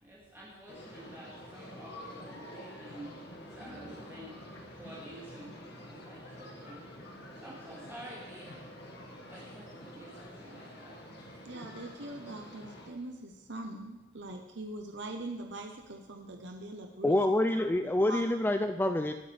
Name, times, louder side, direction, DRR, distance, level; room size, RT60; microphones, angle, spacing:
voice 1, 0.0-6.8 7.4-8.6 9.3-11.1, right 1 dB, 10° right, -7 dB, 2.1 m, -50 dB
sound 1, 0.7-12.9, left 1 dB, 50° left, 1.8 m, -48 dB
voice 2, 11.4-17.2 18.1-18.2, right 2 dB, 55° right, 4 dB, 0.9 m, -42 dB
voice 3, 17.0-19.1, left 1 dB, 10° left, 7 dB, 0.3 m, -27 dB
20.0 x 8.2 x 3.4 m, 1.0 s
head